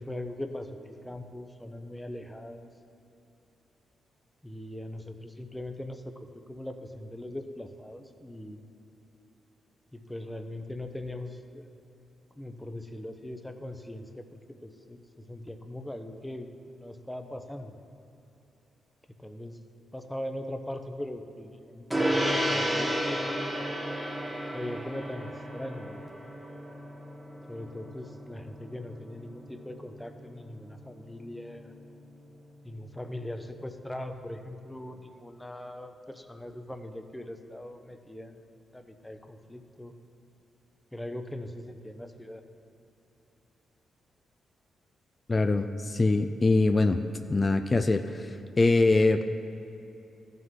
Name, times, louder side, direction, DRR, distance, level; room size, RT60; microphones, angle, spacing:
voice 1, 0.0-2.7 4.4-6.1 6.5-8.6 9.9-11.7 12.4-17.7 19.2-19.6 19.9-23.5 24.5-26.1 27.5-31.7 32.6-39.9 40.9-42.4, left 1 dB, 10° left, 7 dB, 0.7 m, -40 dB
Gong, 21.9-31.6, equal, 15° right, 1.3 m, -33 dB
voice 2, 45.3-47.0 47.3-49.3, left 2 dB, 35° left, 8 dB, 0.4 m, -23 dB
13.5 x 5.6 x 3.8 m, 2.9 s
supercardioid pair, 50°, 0 cm